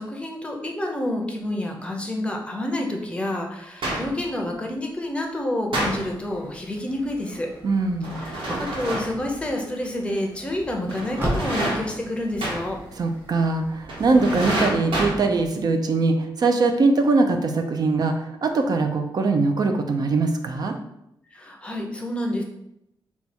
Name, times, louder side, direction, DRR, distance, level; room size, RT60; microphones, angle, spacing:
voice 1, 0.0-7.5 8.2-12.8 21.3-22.4, left 1 dB, 15° left, 1 dB, 0.6 m, -29 dB
sound 1, 3.8-4.2 5.7-6.3 8.0-9.3 10.9-12.1 12.4-12.9 13.9-15.5, right 1 dB, 80° right, 1.3 m, -28 dB
sound 2, 5.8-14.3, right 1 dB, 30° right, 1.1 m, -37 dB
voice 2, 7.6-8.2 13.0-20.7, right 3 dB, 50° right, 5 dB, 0.5 m, -22 dB
4.2 x 2.3 x 4.3 m, 0.79 s
wide cardioid pair, 145°, 8 cm